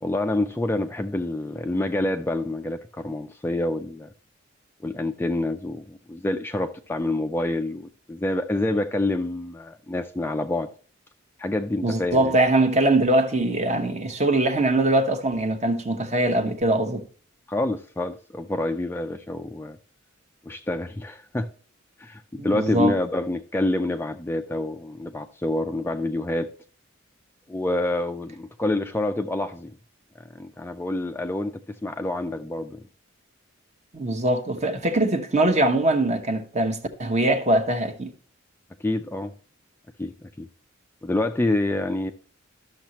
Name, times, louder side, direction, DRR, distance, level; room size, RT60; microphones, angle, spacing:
voice 1, 0.0-4.1 4.8-10.7 11.4-12.3 17.5-19.8 20.4-21.5 22.0-26.5 27.5-29.7 30.2-32.9 38.8-39.3 40.0-40.5 41.0-42.1, left 2 dB, 10° left, 0.3 m, -27 dB
voice 2, 11.8-17.0 22.4-22.9 33.9-38.1, right 1 dB, 35° right, 0.9 m, -22 dB
12.0 x 6.5 x 2.9 m
head